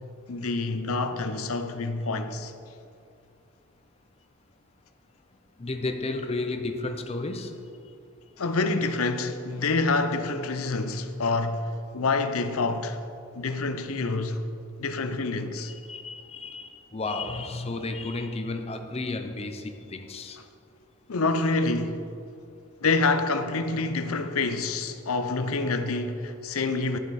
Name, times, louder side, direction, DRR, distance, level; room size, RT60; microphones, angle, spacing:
voice 1, 0.3-2.5 8.4-13.0 13.3-14.5 14.8-15.7 21.1-22.1 22.8-27.0, left 3 dB, 80° left, 0.7 m, -27 dB
voice 2, 5.6-7.5 15.7-20.4, left 2 dB, 30° left, 0.6 m, -33 dB
10.0 x 7.8 x 4.2 m
head